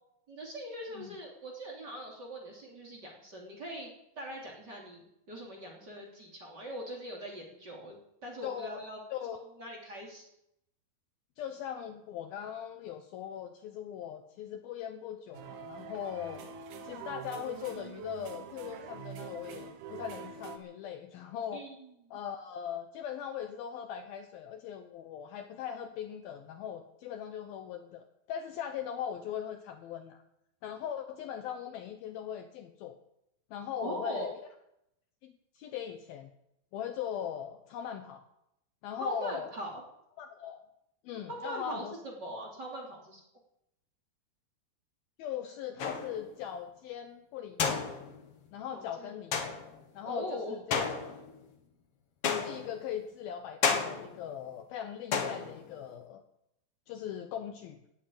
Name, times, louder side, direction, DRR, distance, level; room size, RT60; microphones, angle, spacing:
voice 1, 0.3-3.9 4.1-9.0 9.6-10.3 21.5-21.9 33.8-34.3 39.0-39.8 41.4-43.2 48.7-49.1 50.0-50.5, equal, 25° right, -1 dB, 3.2 m, -41 dB
voice 2, 8.4-9.4 11.4-16.5 16.8-21.6 22.1-30.2 30.6-33.0 33.5-34.3 35.2-36.3 36.7-38.2 38.8-39.5 40.2-40.6 41.0-41.9 45.2-47.8 48.5-49.3 49.9-50.8 52.2-56.2 56.9-57.8, left 9 dB, 75° left, 7 dB, 2.4 m, -40 dB
sound 1, 15.3-20.6, right 7 dB, 60° right, 2.3 m, -45 dB
sound 2, 45.8-46.3 47.6-48.3 49.3-49.8 50.7-51.4 52.2-52.9 53.6-54.3 55.1-55.8, left 6 dB, 55° left, 1.6 m, -32 dB
19.0 x 8.5 x 8.8 m, 0.82 s
omnidirectional pair, 5.0 m